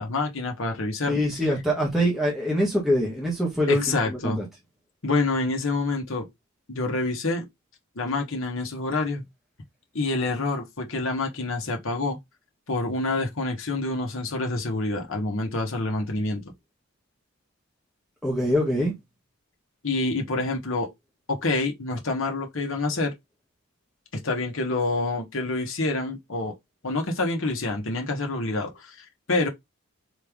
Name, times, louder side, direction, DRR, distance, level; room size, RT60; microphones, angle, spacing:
voice 1, 0.0-1.2 3.7-4.4 5.0-6.3 6.7-7.4 8.0-9.2 9.9-12.2 12.7-16.4 19.8-20.9 21.3-23.1 24.1-26.5 26.8-29.5, left 2 dB, 65° left, 1.3 m, -27 dB
voice 2, 1.1-4.4 18.2-18.9, equal, ahead, 1.3 m, -24 dB
4.1 x 3.3 x 3.6 m
head